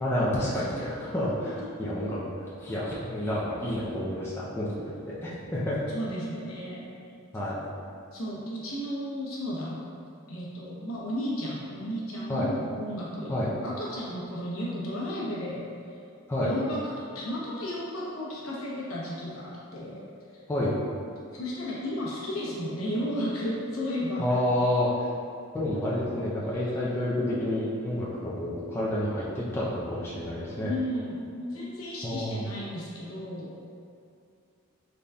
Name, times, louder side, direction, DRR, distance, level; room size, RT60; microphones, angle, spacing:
voice 1, 0.0-4.7 5.0-5.8 7.1-7.6 12.3-12.5 13.3-13.5 16.3-16.5 20.5-20.7 24.2-25.1 25.5-30.7 32.0-32.5, left 1 dB, 10° left, -8 dB, 0.4 m, -29 dB
voice 2, 5.9-6.9 8.1-9.8 10.3-13.3 13.6-15.6 16.4-20.0 21.3-24.3 30.6-33.5, equal, 70° left, -6 dB, 0.8 m, -33 dB
3.9 x 3.4 x 2.2 m, 2.5 s
head